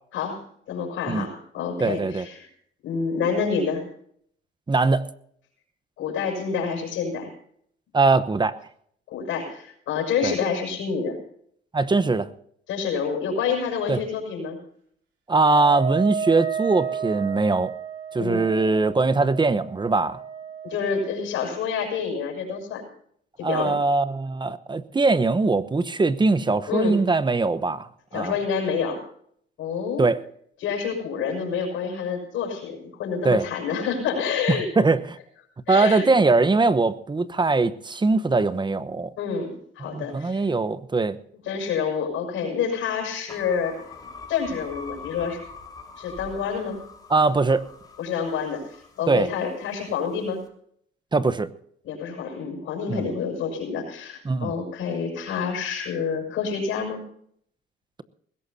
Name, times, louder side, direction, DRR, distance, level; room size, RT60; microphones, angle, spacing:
voice 1, 0.7-2.5 2.8-3.8 6.0-7.3 9.1-11.2 12.7-14.6 18.2-18.4 20.6-22.8 23.4-23.7 26.7-27.0 28.1-29.0 29.6-30.1 30.6-34.7 35.7-36.1 39.2-40.4 41.5-43.7 44.3-45.4 46.0-46.8 48.0-50.4 51.8-57.0, left 6 dB, 85° left, 2 dB, 6.5 m, -28 dB
voice 2, 1.8-2.3 4.7-5.0 7.9-8.5 10.2-10.3 11.7-12.3 13.9-14.0 15.3-17.7 18.1-20.2 23.4-28.3 30.0-30.2 33.2-33.5 34.5-35.2 35.7-39.1 39.9-41.2 47.1-47.7 49.1-49.3 51.1-51.5 52.9-53.1 54.2-54.5, right 3 dB, 20° right, 14 dB, 1.0 m, -21 dB
Wind instrument woodwind instrument, 15.5-21.1, right 7 dB, 90° right, 4.9 m, -32 dB
sound 1, 43.3-49.6, left 4 dB, 20° left, 3.3 m, -43 dB
20.5 x 17.0 x 2.8 m, 0.65 s
cardioid pair, 90°, 20 cm